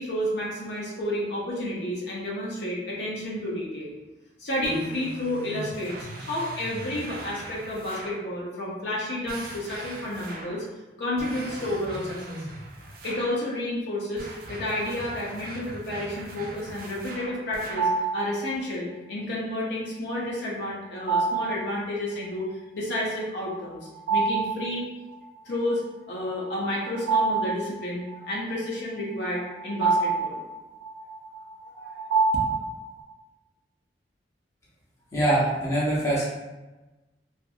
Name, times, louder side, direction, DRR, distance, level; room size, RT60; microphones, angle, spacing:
voice 1, 0.0-3.9 4.4-10.6 11.0-12.4 13.0-22.5 22.7-23.8 24.1-24.9 25.5-30.4 31.8-31.9 32.3-32.4, left 1 dB, 65° left, -4 dB, 0.6 m, -31 dB
sound 1, 4.6-8.3 9.3-10.7 11.2-13.4 14.2-18.0, right 1 dB, 50° right, 0.4 m, -40 dB
sound 2, 17.8-18.4 21.1-21.7 24.0-24.7 25.1-25.2 26.6-28.2 29.1-33.0, right 4 dB, 90° right, 0.7 m, -26 dB
voice 2, 35.1-36.2, right 1 dB, 15° left, -7 dB, 0.7 m, -23 dB
2.7 x 2.5 x 2.4 m, 1.1 s
head